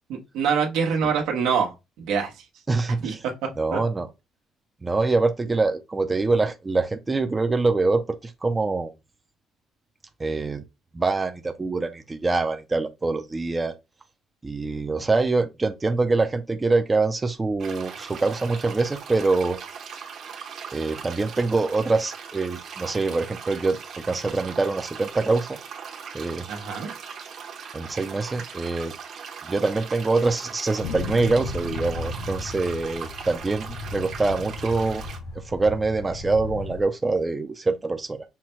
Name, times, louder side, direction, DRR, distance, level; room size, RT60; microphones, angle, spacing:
voice 1, 0.1-2.4 3.0-3.3 3.7-3.8 26.5-26.9, right 6 dB, 90° right, 1.1 m, -25 dB
voice 2, 2.7-3.2 3.6-4.1 4.8-8.9 10.2-10.6 10.9-13.8 14.4-19.6 20.7-25.6 26.1-26.5 27.7-28.9 29.5-33.7 33.9-35.0 35.5-38.2, right 3 dB, 15° right, 0.4 m, -24 dB
sound 1, 17.6-35.2, right 6 dB, 50° right, 0.9 m, -39 dB
sound 2, 30.8-36.8, left 3 dB, 85° left, 1.8 m, -35 dB
5.6 x 2.2 x 3.0 m
cardioid pair, 140°, 0 cm